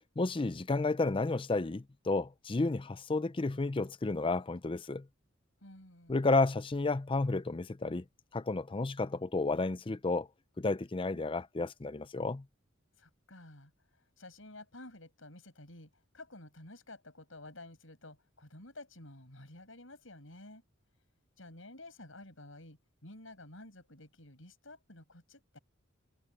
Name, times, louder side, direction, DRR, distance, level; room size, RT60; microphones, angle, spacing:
voice 1, 0.2-5.1 6.1-8.0 8.3-10.3 10.6-12.4, left 3 dB, 25° left, 0.5 m, -31 dB
voice 2, 5.6-6.3 13.0-13.7 14.2-20.6 21.4-25.6, left 2 dB, 75° left, 7.9 m, -52 dB
head